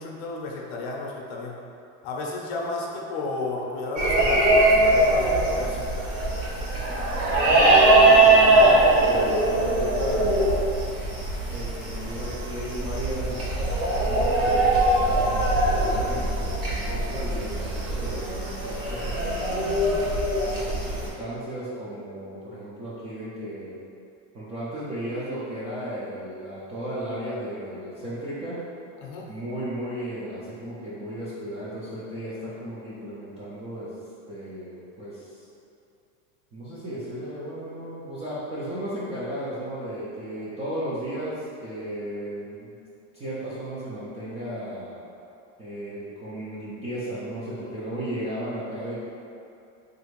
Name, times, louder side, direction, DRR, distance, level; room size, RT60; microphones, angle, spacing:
voice 1, 0.0-1.6 2.0-5.9 29.0-29.3, left 2 dB, 55° left, -1 dB, 0.6 m, -33 dB
sound 1, 4.0-21.1, right 2 dB, 35° right, 0.7 m, -21 dB
voice 2, 7.5-10.5 11.5-19.8 20.4-23.8 24.3-28.6 29.3-33.9 34.3-35.4 36.5-42.7 43.1-45.0 45.6-49.0, right 1 dB, 15° right, -10 dB, 0.3 m, -35 dB
3.3 x 2.5 x 3.1 m, 2.6 s
supercardioid pair, 140°, 41 cm